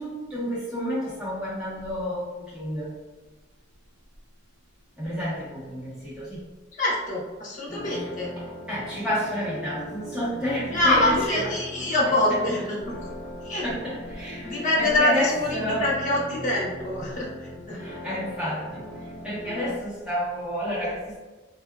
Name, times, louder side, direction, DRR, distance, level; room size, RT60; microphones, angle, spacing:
voice 1, 0.0-2.9 5.0-6.4 7.9-8.1 8.7-11.5 13.6-15.8 17.8-18.8 19.2-21.2, equal, 5° right, -10 dB, 1.3 m, -30 dB
voice 2, 6.8-8.3 10.7-12.9 13.4-13.7 14.4-17.8, left 1 dB, 40° left, -4 dB, 0.9 m, -25 dB
sound 1, 7.7-19.7, left 1 dB, 15° left, 1.4 m, -39 dB
3.4 x 2.7 x 2.3 m, 1.2 s
head